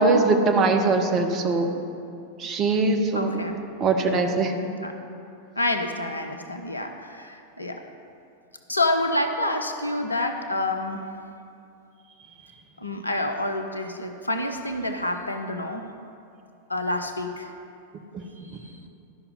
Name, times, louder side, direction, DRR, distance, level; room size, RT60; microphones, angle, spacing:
voice 1, 0.0-1.7 2.4-3.3 3.8-4.6 18.1-18.2, right 3 dB, 30° right, 5 dB, 0.9 m, -21 dB
voice 2, 3.1-3.6 4.8-4.9 5.6-7.8 8.7-11.1 12.8-15.9 16.7-17.5 18.6-18.8, left 2 dB, 80° left, 6 dB, 0.7 m, -28 dB
12.5 x 5.8 x 5.3 m, 2.6 s
figure-of-eight pair, 90°, 0 cm